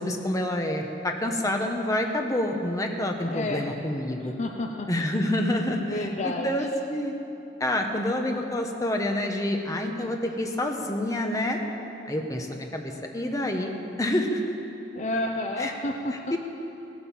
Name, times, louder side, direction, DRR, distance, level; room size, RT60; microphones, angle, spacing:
voice 1, 0.0-4.3 4.9-7.1 7.6-11.6 12.1-13.7 14.0-14.5 15.6-15.7 16.3-16.4, left 1 dB, 20° left, 2 dB, 1.3 m, -27 dB
voice 2, 3.2-3.6 4.4-4.9 5.8-6.5 14.9-16.1, left 2 dB, 40° left, 2 dB, 0.8 m, -30 dB
16.5 x 10.0 x 7.4 m, 2.9 s
head